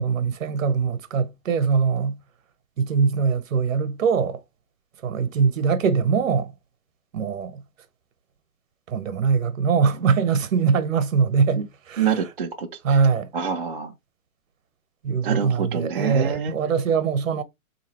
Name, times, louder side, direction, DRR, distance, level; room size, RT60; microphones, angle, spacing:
voice 1, 0.0-2.2 2.8-4.4 5.0-6.5 7.1-7.6 8.9-12.2 12.8-13.3 15.0-17.4, right 5 dB, 65° right, 0.9 m, -22 dB
voice 2, 12.0-12.7 13.3-13.9 15.2-16.5, right 7 dB, 40° right, 0.4 m, -26 dB
3.8 x 2.9 x 2.8 m
hypercardioid pair, 160°, 43 cm